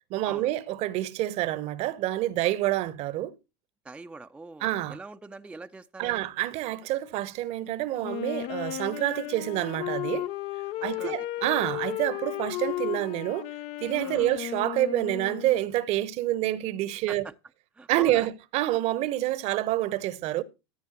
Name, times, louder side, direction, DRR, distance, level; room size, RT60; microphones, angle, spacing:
voice 1, 0.1-3.3 4.6-5.0 6.0-10.3 10.8-13.5 13.8-17.3 17.9-20.4, right 15 dB, 50° right, 0.9 m, -28 dB
voice 2, 3.8-6.3 10.8-11.2 14.0-14.3 17.1-17.3 17.7-18.3, right 3 dB, 10° right, 0.5 m, -43 dB
Wind instrument woodwind instrument, 8.0-15.7, left 14 dB, 50° left, 0.5 m, -34 dB
14.5 x 9.3 x 2.9 m
hypercardioid pair, 90°, 14 cm